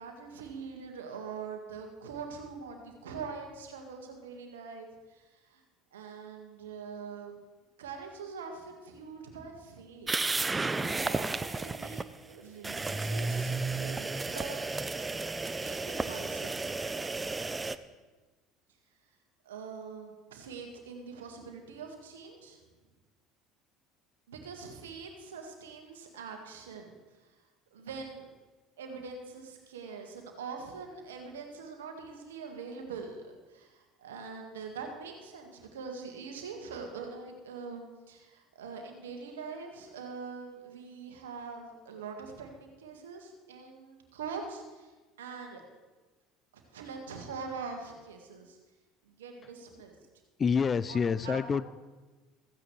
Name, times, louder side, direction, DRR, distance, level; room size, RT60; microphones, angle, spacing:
voice 1, 0.0-5.6 5.9-7.4 7.8-10.4 11.0-14.6 15.4-17.6 19.4-22.6 24.3-27.4 27.7-28.3 28.8-45.6 46.5-48.6 49.0-50.0 50.9-51.4, right 5 dB, 80° right, 3 dB, 1.8 m, -44 dB
sound 1, 10.1-12.0 12.6-17.8, right 3 dB, 20° right, 0.5 m, -33 dB
voice 2, 50.4-51.7, left 6 dB, 30° left, 17 dB, 0.4 m, -27 dB
15.0 x 15.0 x 3.3 m, 1.2 s
hypercardioid pair, 70°, 0 cm